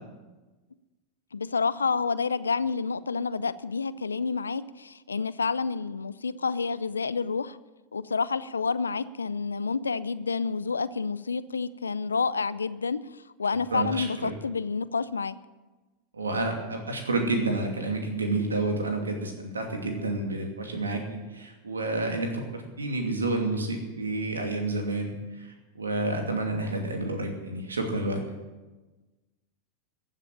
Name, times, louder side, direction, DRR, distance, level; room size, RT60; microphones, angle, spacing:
voice 1, 1.3-7.6 7.9-13.0 13.4-15.3, left 5 dB, 90° left, 16 dB, 0.5 m, -29 dB
voice 2, 13.7-14.3 16.1-28.2, right 2 dB, 90° right, 3 dB, 2.6 m, -30 dB
15.5 x 7.5 x 9.9 m, 1.2 s
hypercardioid pair, 90°, 0 cm